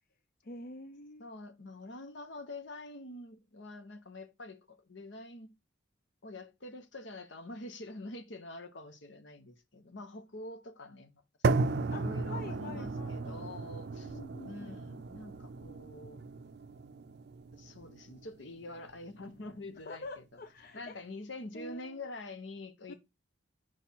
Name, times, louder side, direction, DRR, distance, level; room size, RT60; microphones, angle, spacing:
voice 1, 0.4-1.3 11.9-12.0 12.3-13.6 14.0-14.8 19.8-21.0 21.5-22.1 22.9-23.0, left 2 dB, 50° left, 0.5 m, -46 dB
voice 2, 1.2-5.5 6.2-11.2 11.9-14.2 14.5-16.2 17.5-20.2 20.7-23.0, left 2 dB, 70° left, 1.0 m, -46 dB
sound 1, 11.4-19.5, right 3 dB, 55° right, 0.4 m, -35 dB
4.9 x 4.3 x 5.7 m
head